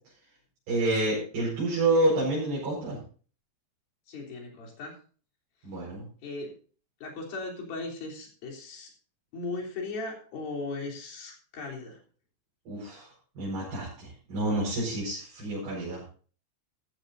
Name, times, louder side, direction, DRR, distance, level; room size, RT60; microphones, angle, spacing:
voice 1, 0.7-3.0 5.6-6.1 12.7-13.1 13.4-16.0, right 2 dB, 60° right, -6 dB, 6.9 m, -28 dB
voice 2, 4.1-5.0 6.2-6.5 7.0-8.9 9.3-12.0, left 3 dB, 60° left, -1 dB, 5.2 m, -37 dB
15.0 x 14.0 x 2.7 m, 0.41 s
omnidirectional pair, 5.0 m